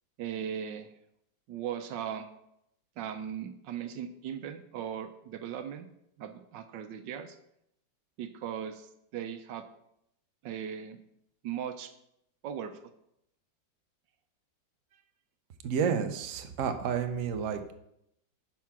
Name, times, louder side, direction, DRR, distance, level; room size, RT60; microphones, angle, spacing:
voice 1, 0.2-0.9 1.5-2.3 3.0-5.9 6.2-7.4 8.2-9.7 10.4-11.0 11.4-11.9 12.4-12.8, right 9 dB, 75° right, 9 dB, 1.4 m, -38 dB
voice 2, 15.6-17.7, right 7 dB, 55° right, 7 dB, 1.0 m, -30 dB
10.5 x 4.7 x 5.8 m, 0.78 s
omnidirectional pair, 2.0 m